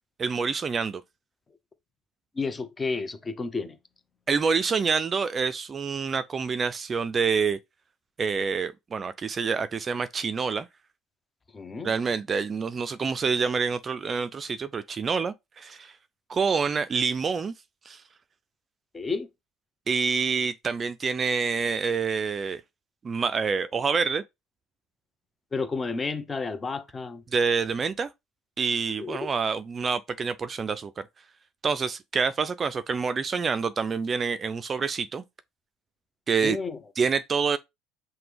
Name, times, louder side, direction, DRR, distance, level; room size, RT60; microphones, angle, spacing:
voice 1, 0.2-1.0 4.3-7.6 8.2-10.7 11.8-15.9 16.3-17.5 17.9-18.0 19.9-22.6 23.0-24.2 27.3-28.1 28.6-31.0 31.6-35.2 36.3-36.6 37.0-37.6, right 5 dB, 35° right, 0.4 m, -27 dB
voice 2, 2.4-3.8 11.5-11.9 18.9-19.3 25.5-27.2 29.0-29.3 36.4-36.8, left 4 dB, 25° left, 0.8 m, -31 dB
5.8 x 2.1 x 3.4 m
hypercardioid pair, 70°, 0 cm